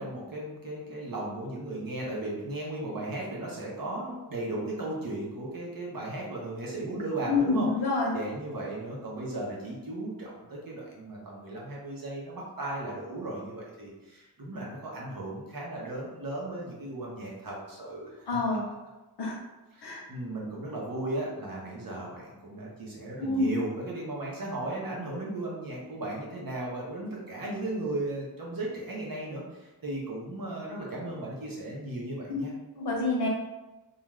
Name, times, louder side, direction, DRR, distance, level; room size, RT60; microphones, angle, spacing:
voice 1, 0.0-7.7 8.1-18.6 19.7-32.5, right 2 dB, 60° right, -4 dB, 0.9 m, -36 dB
voice 2, 7.3-8.1 18.3-18.6 19.2-19.4 19.8-20.0 23.2-23.6 32.3-32.4 32.8-33.3, left 3 dB, 80° left, -2 dB, 0.8 m, -27 dB
2.4 x 2.4 x 3.1 m, 1.1 s
wide cardioid pair, 115°, 39 cm